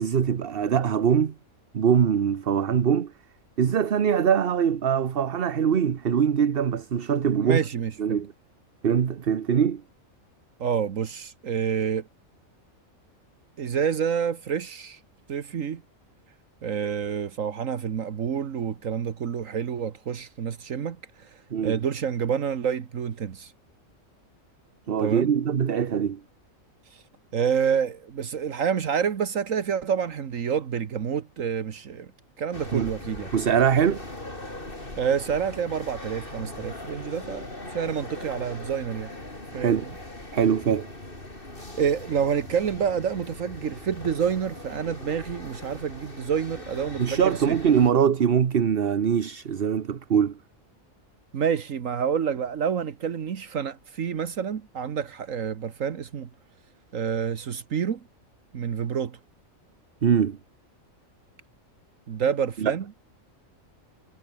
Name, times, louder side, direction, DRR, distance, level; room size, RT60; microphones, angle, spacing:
voice 1, 0.0-1.3 1.7-3.1 3.6-7.6 8.0-8.3 8.8-9.8 21.5-21.8 24.9-26.2 32.7-32.9 33.3-34.0 39.5-39.8 40.3-40.9 47.0-50.4 60.0-60.4 62.6-62.7, right 8 dB, 50° right, 1.1 m, -22 dB
voice 2, 7.4-8.2 10.6-12.1 13.6-15.0 15.3-15.8 16.6-23.5 25.0-25.3 26.9-27.0 27.3-32.1 32.4-33.3 35.0-37.4 37.7-39.1 39.5-40.0 41.8-47.6 51.3-56.3 56.9-58.0 58.5-59.2 62.1-62.9, right 7 dB, 75° right, 1.6 m, -28 dB
sound 1, 32.5-47.9, left 2 dB, 40° left, 5.0 m, -40 dB
omnidirectional pair, 1.4 m